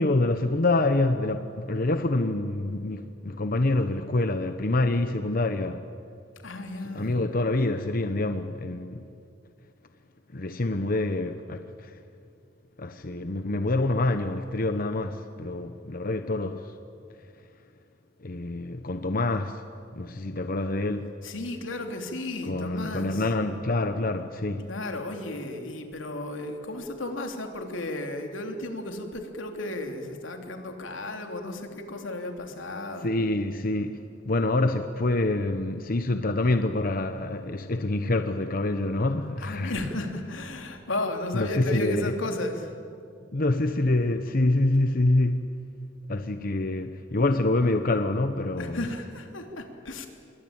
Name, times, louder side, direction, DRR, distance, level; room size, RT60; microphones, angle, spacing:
voice 1, 0.0-5.8 6.9-9.1 10.3-12.0 12.8-16.7 18.2-19.6 19.9-21.1 22.4-24.7 33.0-39.7 41.3-42.1 43.3-45.6 46.1-48.8, left 2 dB, 45° left, 0.9 m, -26 dB
voice 2, 6.4-7.2 21.2-23.2 24.7-33.1 39.4-42.7 48.6-50.1, left 1 dB, 85° left, 3.2 m, -34 dB
27.5 x 23.0 x 8.8 m
head